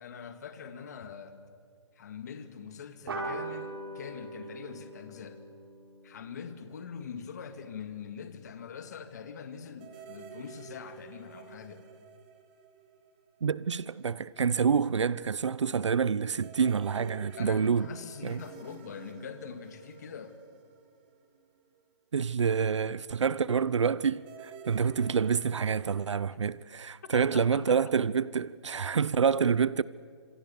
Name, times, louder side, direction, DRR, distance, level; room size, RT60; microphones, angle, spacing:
voice 1, 0.0-1.5 2.0-5.4 6.0-11.9 17.4-20.4 26.3-26.4 27.1-27.9, left 7 dB, 35° left, 2.1 m, -43 dB
sound 1, 3.1-8.0, right 2 dB, 55° right, 6.0 m, -42 dB
sound 2, 9.8-13.6 13.8-13.9 16.4-21.8 24.1-26.2, right 8 dB, 20° right, 1.5 m, -50 dB
voice 2, 13.4-17.9 18.2-18.4 22.1-29.8, right 6 dB, 80° right, 0.8 m, -27 dB
29.5 x 27.0 x 7.0 m
hypercardioid pair, 170°, 15 cm